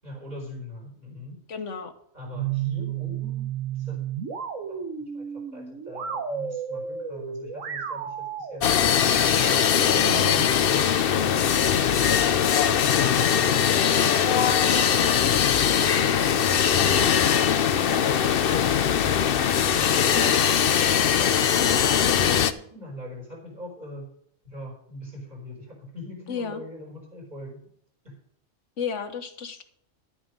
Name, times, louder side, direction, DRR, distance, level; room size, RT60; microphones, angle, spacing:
voice 1, 0.0-1.4 2.1-3.5 3.7-4.0 4.7-4.8 5.1-5.2 5.5-8.7 22.7-24.1 24.4-27.6 28.0-28.2, left 1 dB, 35° right, -2 dB, 5.6 m, -42 dB
voice 2, 1.5-1.9 19.9-20.4 26.3-26.6 28.8-29.6, left 6 dB, 70° left, 8 dB, 1.6 m, -32 dB
sound 1, 2.3-10.9, right 8 dB, 85° right, 1.5 m, -33 dB
sound 2, 8.6-22.5, left 8 dB, 55° left, 0.8 m, -21 dB
11.5 x 9.2 x 5.2 m, 0.66 s
omnidirectional pair, 1.3 m